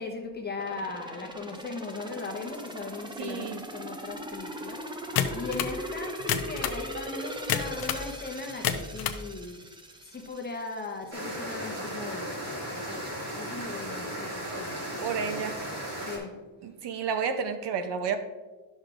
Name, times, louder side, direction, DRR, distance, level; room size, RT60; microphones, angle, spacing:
voice 1, 0.0-4.8 5.3-9.6 10.0-15.3 16.0-16.4, left 3 dB, 20° left, 2 dB, 0.9 m, -38 dB
sound 1, 0.6-11.3 11.7-11.8, equal, 10° right, 0.3 m, -40 dB
voice 2, 3.2-3.7 15.0-15.6 16.6-18.2, right 6 dB, 60° right, 9 dB, 0.7 m, -31 dB
sound 2, 5.2-5.8 6.2-6.8 7.5-8.1 8.5-9.2, left 9 dB, 50° left, 0.6 m, -29 dB
sound 3, 11.1-16.2, equal, 30° right, 2.3 m, -36 dB
12.0 x 6.3 x 2.5 m, 1.3 s
cardioid pair, 165°, 47 cm